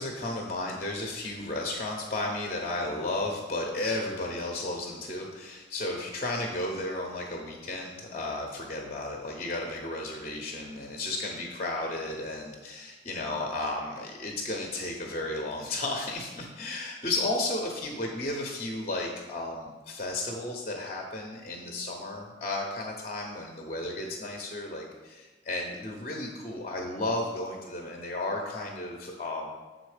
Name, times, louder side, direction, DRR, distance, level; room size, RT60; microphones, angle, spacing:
voice 1, 0.0-29.5, left 2 dB, 35° left, 1 dB, 0.7 m, -33 dB
7.0 x 3.8 x 4.9 m, 1.2 s
head